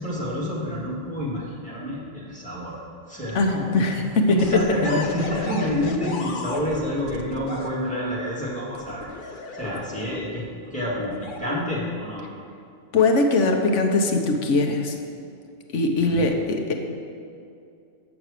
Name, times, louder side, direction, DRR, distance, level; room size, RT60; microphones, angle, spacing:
voice 1, 0.0-2.8 3.1-3.9 4.3-10.4 10.7-12.2 15.9-16.3, left 1 dB, 5° left, -7 dB, 2.1 m, -28 dB
voice 2, 3.3-4.4 12.9-15.0 15.7-16.7, left 3 dB, 85° left, 3 dB, 1.3 m, -21 dB
sound 1, 4.4-7.7 8.7-10.4 11.0-11.4, left 3 dB, 50° left, 0.8 m, -35 dB
8.3 x 6.1 x 6.6 m, 2.5 s
omnidirectional pair, 1.2 m